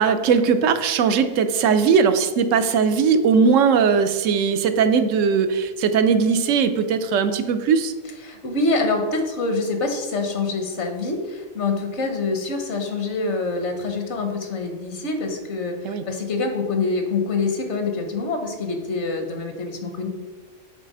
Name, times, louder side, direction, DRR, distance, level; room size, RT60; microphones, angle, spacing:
voice 1, 0.0-7.9 15.8-16.0, right 6 dB, 90° right, 9 dB, 1.0 m, -19 dB
voice 2, 8.2-20.1, left 3 dB, 65° left, 4 dB, 1.2 m, -25 dB
7.3 x 3.3 x 5.3 m, 1.3 s
omnidirectional pair, 1.3 m